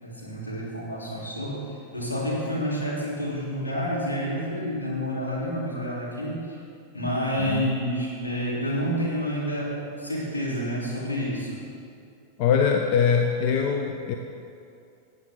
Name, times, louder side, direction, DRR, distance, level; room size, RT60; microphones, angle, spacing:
voice 1, 0.0-6.6 6.9-11.6, equal, 80° left, -6 dB, 3.3 m, -29 dB
voice 2, 12.4-14.2, left 6 dB, 45° left, 4 dB, 0.7 m, -22 dB
18.5 x 8.1 x 3.7 m, 2.5 s
figure-of-eight pair, 90°, 0 cm